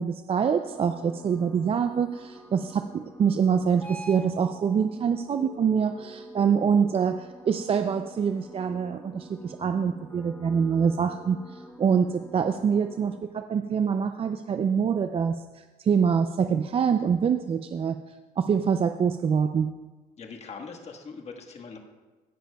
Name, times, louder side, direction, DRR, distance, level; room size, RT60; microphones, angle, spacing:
voice 1, 0.0-18.0 18.4-19.7, right 7 dB, 35° right, 8 dB, 0.4 m, -25 dB
sound 1, 0.7-13.2, right 1 dB, 10° left, 0.9 m, -46 dB
voice 2, 20.2-21.8, left 5 dB, 40° left, 3 dB, 1.5 m, -41 dB
16.5 x 10.0 x 2.3 m, 1.3 s
cardioid pair, 110°, 17 cm